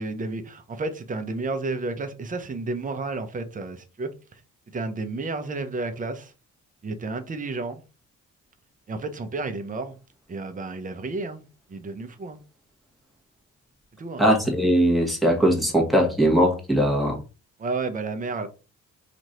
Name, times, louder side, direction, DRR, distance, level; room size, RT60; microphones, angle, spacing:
voice 1, 0.0-4.4 4.7-6.3 6.8-7.8 8.9-9.9 10.3-11.4 11.7-12.4 14.0-14.3 17.6-18.5, right 3 dB, 25° right, 0.7 m, -31 dB
voice 2, 14.2-17.2, equal, ahead, 1.3 m, -20 dB
3.0 x 2.5 x 4.2 m
cardioid pair, 90°, 30 cm